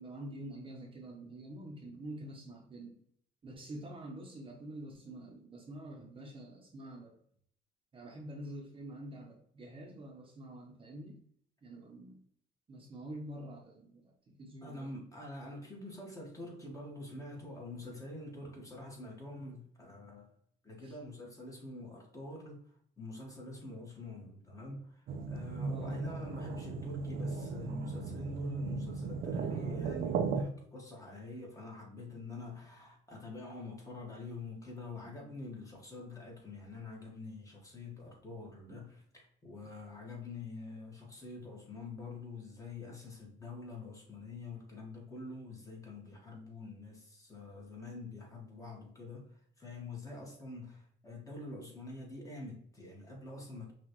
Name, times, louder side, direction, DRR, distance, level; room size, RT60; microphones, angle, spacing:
voice 1, 0.0-3.0 3.4-7.2 7.9-11.2 11.6-12.2 12.7-14.9 20.8-21.0 25.7-26.0 38.7-38.8, right 1 dB, 30° right, 0.9 m, -47 dB
voice 2, 14.6-20.3 20.6-53.7, left 2 dB, 20° left, 1.5 m, -46 dB
sound 1, 25.1-30.4, right 4 dB, 60° right, 0.5 m, -36 dB
5.7 x 2.4 x 3.0 m
cardioid pair, 110°, 17 cm